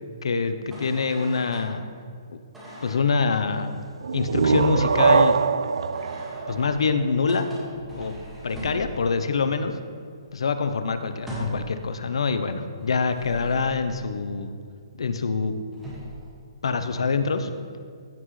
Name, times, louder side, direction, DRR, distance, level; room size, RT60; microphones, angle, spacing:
voice 1, 0.2-1.8 2.8-3.7 4.1-5.4 6.5-7.5 7.9-8.2 8.4-9.8 10.3-14.5 15.0-15.5 16.6-17.5, left 4 dB, 80° left, 9 dB, 0.8 m, -25 dB
sound 1, 0.7-1.7 2.5-3.0 5.9-9.3 9.6-9.8 10.0-11.8 12.7-14.0 15.4-15.5 15.7-16.3, equal, 5° right, 1.8 m, -40 dB
sound 2, 4.0-7.6, right 5 dB, 90° right, 0.3 m, -23 dB
15.0 x 6.0 x 3.3 m, 2.1 s
hypercardioid pair, 170°, 3 cm